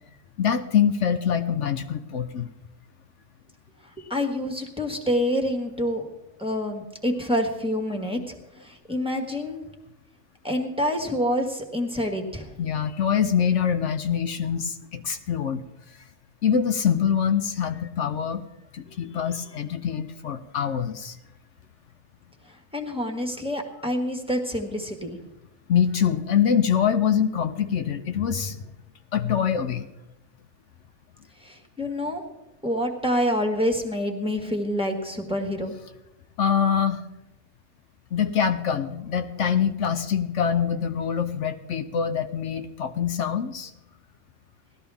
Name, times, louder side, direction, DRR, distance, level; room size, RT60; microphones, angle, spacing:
voice 1, 0.4-2.5 12.6-15.6 16.4-18.4 18.7-21.2 25.7-28.7 29.1-29.9 36.4-37.0 38.1-43.7, left 8 dB, 70° left, 8 dB, 1.0 m, -24 dB
voice 2, 4.1-6.0 6.4-9.6 10.4-12.5 22.5-25.2 31.4-32.2 32.6-35.7, equal, 5° right, 3 dB, 1.5 m, -27 dB
18.0 x 13.0 x 3.5 m, 0.93 s
omnidirectional pair, 1.3 m